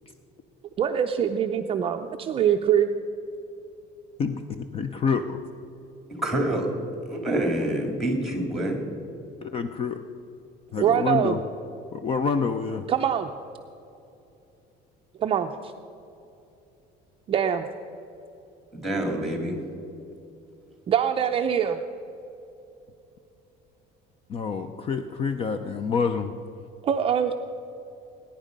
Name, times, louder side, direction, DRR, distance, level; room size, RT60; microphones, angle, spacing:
voice 1, 0.8-2.9 10.8-11.4 12.9-13.3 15.2-15.7 17.3-17.7 20.9-21.8 26.8-27.3, right 9 dB, 30° right, 5 dB, 0.5 m, -23 dB
voice 2, 4.2-5.4 9.4-10.0 10.7-11.4 11.9-12.8 24.3-26.3, left 5 dB, 30° left, 9 dB, 0.5 m, -27 dB
voice 3, 6.2-6.7 7.1-8.9 18.7-19.6, right 1 dB, ahead, 3 dB, 2.3 m, -26 dB
20.0 x 10.0 x 5.2 m, 2.9 s
cardioid pair, 165°, 18 cm